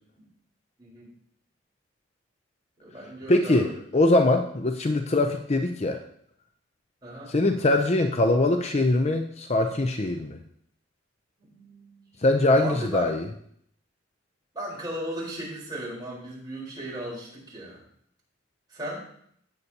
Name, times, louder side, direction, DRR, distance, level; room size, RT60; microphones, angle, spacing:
voice 1, 0.8-1.1 2.8-3.8 7.0-7.3 11.4-12.3 12.5-13.1 14.5-17.8 18.7-19.0, right 1 dB, 20° right, -5 dB, 4.2 m, -36 dB
voice 2, 3.3-6.0 7.3-10.4 12.2-13.3, left 2 dB, 35° left, 5 dB, 0.6 m, -22 dB
17.5 x 6.7 x 2.9 m, 0.67 s
head